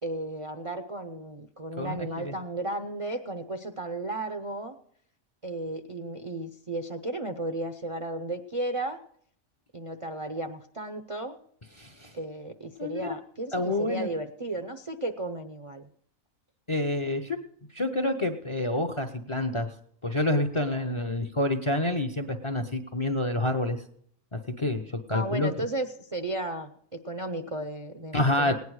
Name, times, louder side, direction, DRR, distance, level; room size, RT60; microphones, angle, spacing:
voice 1, 0.0-4.7 5.4-9.0 9.7-11.4 12.1-15.9 25.1-26.7 27.0-28.5, right 2 dB, 40° right, 4 dB, 0.5 m, -34 dB
voice 2, 1.8-2.4 11.8-12.1 12.8-13.0 13.5-14.1 16.7-17.4 17.7-19.7 20.0-23.8 24.3-25.5 28.1-28.5, left 1 dB, 30° left, 7 dB, 0.6 m, -28 dB
18.0 x 9.4 x 4.7 m, 0.64 s
omnidirectional pair, 1.4 m